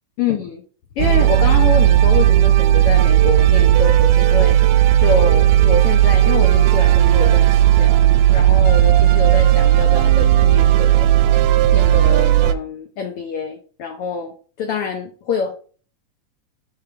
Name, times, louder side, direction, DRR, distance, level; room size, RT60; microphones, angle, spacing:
voice 1, 0.2-0.6 1.0-4.6 5.0-11.1 11.7-15.5, left 5 dB, 80° left, 4 dB, 1.3 m, -26 dB
sound 1, 1.0-12.5, right 12 dB, 80° right, 1.7 m, -14 dB
10.0 x 3.6 x 3.6 m, 0.40 s
omnidirectional pair, 3.6 m